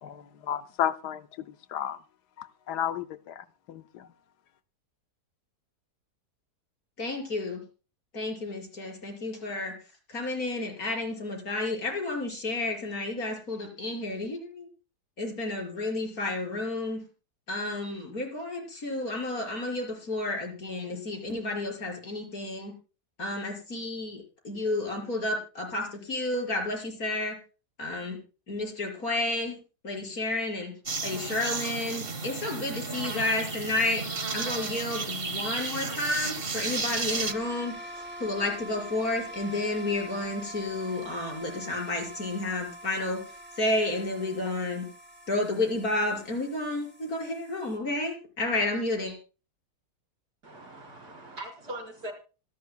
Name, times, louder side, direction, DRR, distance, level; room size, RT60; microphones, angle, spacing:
voice 1, 0.0-2.0 2.4-4.1, left 10 dB, 85° left, 1.4 m, -33 dB
voice 2, 7.0-7.6 8.1-9.7 10.1-14.7 15.2-17.1 17.5-22.7 23.2-27.4 27.8-28.2 28.5-29.6 29.8-30.7 31.0-34.1 34.3-37.8 38.2-43.2 43.6-44.9 45.3-49.2, left 2 dB, 60° left, 6.1 m, -31 dB
sound 1, 30.9-37.3, right 4 dB, 35° right, 1.6 m, -33 dB
sound 2, 37.2-47.8, right 1 dB, 5° right, 3.5 m, -44 dB
voice 3, 50.4-52.1, right 1 dB, 70° right, 5.4 m, -41 dB
26.5 x 11.5 x 2.2 m
omnidirectional pair, 1.7 m